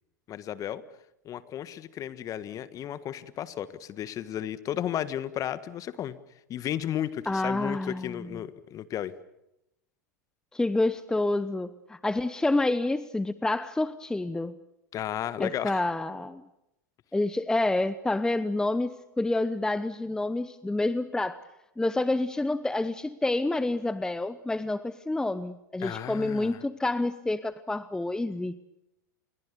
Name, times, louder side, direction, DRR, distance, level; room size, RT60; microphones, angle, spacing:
voice 1, 0.3-0.8 1.2-6.2 6.5-9.1 14.9-15.8 25.8-26.6, left 11 dB, 35° left, 15 dB, 1.6 m, -34 dB
voice 2, 7.3-8.4 10.5-14.6 15.4-16.4 17.1-21.4 21.8-28.6, left 2 dB, 5° left, 15 dB, 0.8 m, -28 dB
28.0 x 22.5 x 6.9 m, 0.84 s
hypercardioid pair, 100°, 10 cm